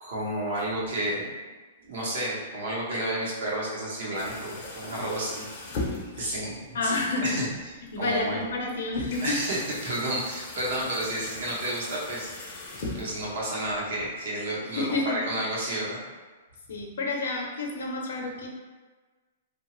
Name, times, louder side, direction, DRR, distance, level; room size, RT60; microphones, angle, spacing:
voice 1, 0.0-1.3 1.9-5.5 6.1-6.9 7.2-7.5 8.0-8.4 9.2-12.3 12.9-16.0, right 1 dB, 55° right, -4 dB, 0.9 m, -31 dB
sound 1, 4.1-14.1, left 2 dB, 30° left, 0.5 m, -40 dB
voice 2, 6.7-7.4 7.9-9.2 14.7-15.2 16.7-18.5, left 2 dB, 75° left, 0 dB, 0.6 m, -29 dB
2.8 x 2.2 x 3.0 m, 1.3 s
hypercardioid pair, 175°, 0 cm